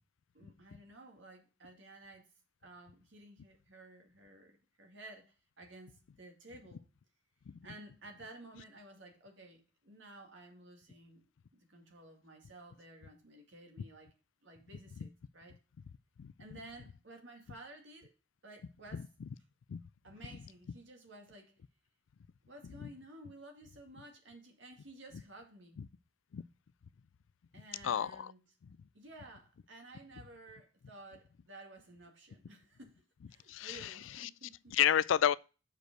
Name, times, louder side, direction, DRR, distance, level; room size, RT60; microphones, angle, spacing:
voice 1, 0.3-2.3 2.6-6.8 7.6-14.1 14.4-15.6 16.4-18.1 18.4-19.1 20.0-21.5 22.5-25.8 27.5-28.4 28.9-33.0 33.3-34.8, right 2 dB, 75° right, 2.2 m, -54 dB
voice 2, 27.8-28.3 33.5-34.3 34.7-35.3, left 9 dB, 90° left, 0.4 m, -31 dB
6.2 x 5.2 x 6.6 m
head